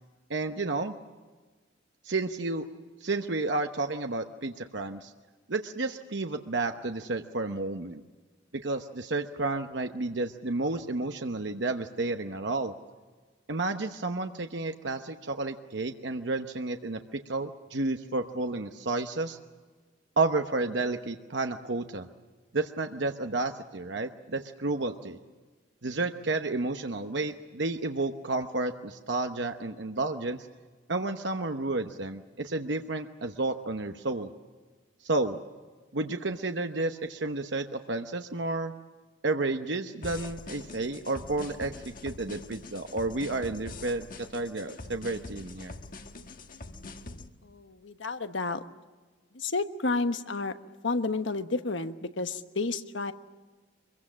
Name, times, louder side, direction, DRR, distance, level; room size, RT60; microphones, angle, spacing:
voice 1, 0.3-1.0 2.0-2.6 3.0-5.1 5.5-8.0 8.6-12.7 13.5-17.0 17.3-19.4 20.2-22.1 22.5-25.2 25.8-30.5 30.9-34.3 35.0-35.4 35.9-38.7 39.2-45.8, right 2 dB, 65° right, 5 dB, 1.0 m, -31 dB
sound 1, 40.0-47.3, left 2 dB, 45° left, 1.4 m, -44 dB
voice 2, 47.4-48.6 49.3-50.5 50.8-53.1, left 3 dB, 75° left, 9 dB, 1.2 m, -31 dB
25.0 x 22.5 x 7.5 m, 1.3 s
head